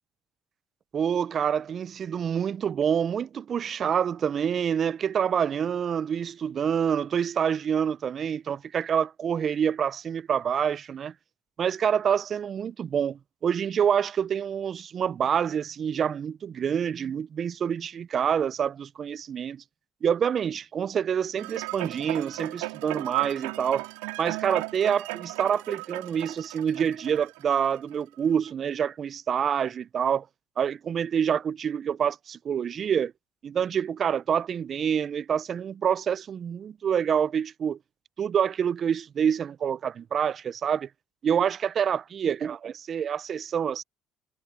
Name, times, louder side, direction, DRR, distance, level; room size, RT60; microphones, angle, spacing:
voice 1, 0.9-11.1 11.6-19.6 20.0-23.9 24.2-30.3 30.6-33.1 33.4-37.8 38.2-40.9 41.2-43.8, right 8 dB, 50° right, 0.6 m, -27 dB
sound 1, 21.4-27.9 28.5-28.6, right 27 dB, 80° right, 3.5 m, -35 dB
hypercardioid pair, 65°, 0 cm